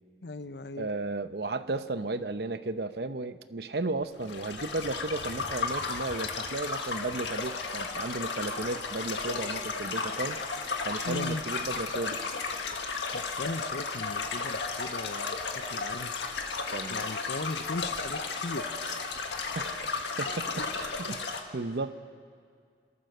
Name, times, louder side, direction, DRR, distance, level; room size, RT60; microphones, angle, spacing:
voice 1, 0.2-0.9 11.1-11.4 13.1-16.1 16.9-18.8, left 3 dB, 70° left, 12 dB, 0.7 m, -38 dB
voice 2, 0.8-10.4 10.8-12.2 16.7-17.0 19.5-19.9 20.2-22.0, right 2 dB, 65° right, 11 dB, 0.8 m, -34 dB
sound 1, 4.2-21.4, left 4 dB, 90° left, 1.7 m, -34 dB
29.0 x 13.5 x 6.7 m, 2.2 s
head